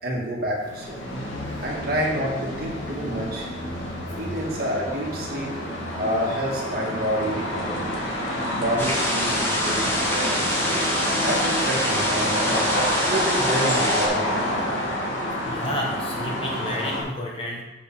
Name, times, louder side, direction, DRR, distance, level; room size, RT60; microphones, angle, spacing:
voice 1, 0.0-1.0 1.6-3.5 4.1-5.5 5.9-7.8 8.5-10.9 11.2-12.5 13.0-14.6, equal, 50° right, -3 dB, 2.0 m, -28 dB
sound 1, 0.6-17.0, left 1 dB, 85° left, 1.9 m, -28 dB
sound 2, 8.8-14.1, equal, 10° left, 1.6 m, -26 dB
voice 2, 15.4-17.6, left 1 dB, 30° left, -1 dB, 1.3 m, -31 dB
7.3 x 5.4 x 5.5 m, 1.2 s
head